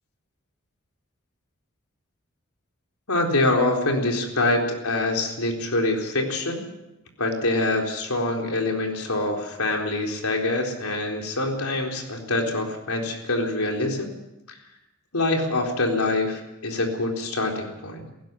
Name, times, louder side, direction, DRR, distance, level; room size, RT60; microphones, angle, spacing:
voice 1, 3.1-6.6 7.2-14.1 15.1-18.1, left 2 dB, 90° left, 2 dB, 4.0 m, -25 dB
18.0 x 15.5 x 9.4 m, 0.92 s
head